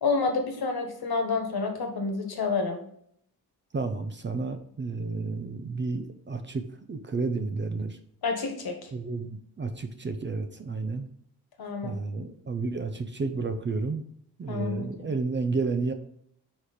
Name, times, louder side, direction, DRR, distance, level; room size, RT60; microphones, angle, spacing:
voice 1, 0.0-2.8 8.2-8.9 11.6-11.9 14.5-14.9, left 4 dB, 65° left, 4 dB, 1.4 m, -29 dB
voice 2, 3.7-6.6 6.9-8.0 8.9-11.1 11.8-14.0 14.4-15.9, right 3 dB, 30° right, 8 dB, 0.5 m, -31 dB
4.8 x 4.3 x 5.0 m, 0.68 s
wide cardioid pair, 130°, 39 cm